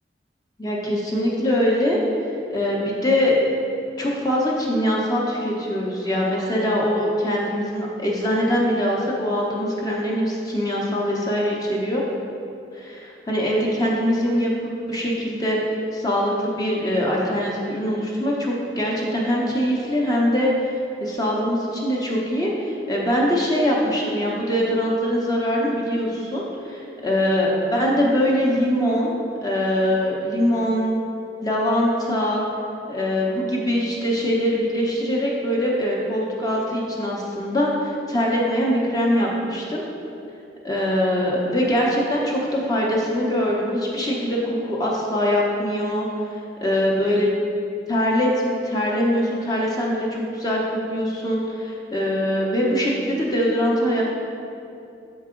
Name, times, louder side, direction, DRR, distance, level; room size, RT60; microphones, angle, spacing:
voice 1, 0.6-2.0 2.5-3.3 4.0-12.0 12.7-14.5 14.9-15.6 15.9-20.7 21.0-31.0 31.4-32.4 32.9-39.8 40.6-46.1 46.6-47.3 47.9-54.0, equal, 20° left, -3 dB, 0.7 m, -22 dB
6.6 x 4.7 x 3.7 m, 2.7 s
head